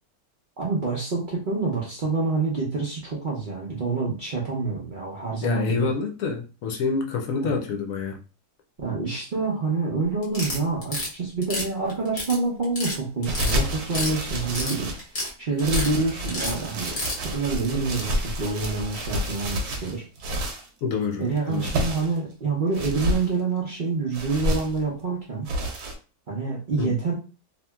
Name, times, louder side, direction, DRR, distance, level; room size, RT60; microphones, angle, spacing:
voice 1, 0.6-5.9 7.4-7.5 8.8-14.9 15.4-20.0 21.2-25.5 26.3-27.1, right 4 dB, 50° right, -4 dB, 0.6 m, -27 dB
voice 2, 5.4-8.2 20.8-21.9 26.8-27.0, left 5 dB, 70° left, 2 dB, 0.9 m, -27 dB
sound 1, 10.2-11.1 11.4-12.4 12.6-13.0 13.2-14.1 14.4-15.3 15.6-15.9 16.3-17.2, left 1 dB, 40° left, 0.9 m, -29 dB
sound 2, 13.2-15.1 15.6-20.7 21.4-22.2 22.7-23.3 24.1-24.8 25.5-25.9, equal, 90° right, 1.2 m, -29 dB
2.9 x 2.6 x 2.2 m, 0.34 s
omnidirectional pair, 1.6 m